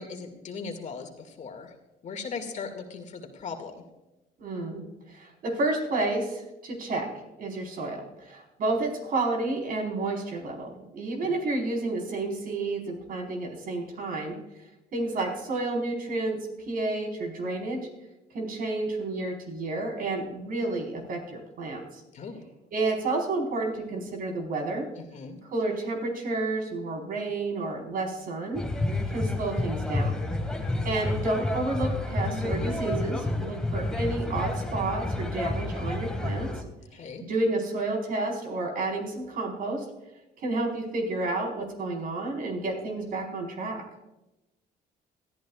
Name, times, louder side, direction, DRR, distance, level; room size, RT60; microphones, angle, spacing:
voice 1, 0.0-1.7 2.0-3.8 11.2-11.3 22.1-22.4 25.0-25.4 36.9-37.2, left 5 dB, 45° left, 5 dB, 2.2 m, -38 dB
voice 2, 4.4-7.1 7.4-14.4 14.9-16.4 16.7-17.8 18.3-22.0 22.7-24.8 25.4-28.6 29.1-30.2 30.8-36.6 37.2-39.8 40.4-43.8, right 2 dB, 55° right, 1 dB, 4.6 m, -30 dB
sound 1, 28.5-36.6, left 2 dB, 5° left, 1.9 m, -30 dB
22.5 x 14.5 x 2.4 m, 1.0 s
cardioid pair, 110°, 17 cm